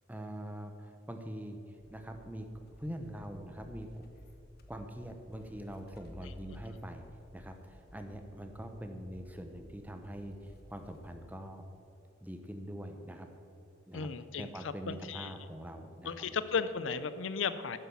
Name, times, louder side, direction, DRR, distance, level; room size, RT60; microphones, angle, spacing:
voice 1, 0.1-1.6 1.9-2.5 2.8-4.0 4.7-7.0 7.3-11.6 12.2-13.3 13.9-14.1 14.4-16.3, equal, 10° right, 6 dB, 0.9 m, -43 dB
sound 1, 1.8-11.2, left 1 dB, 55° left, 1.0 m, -55 dB
voice 2, 13.9-15.3 16.0-17.8, left 5 dB, 90° left, 13 dB, 0.6 m, -35 dB
10.5 x 8.1 x 7.1 m, 2.5 s
head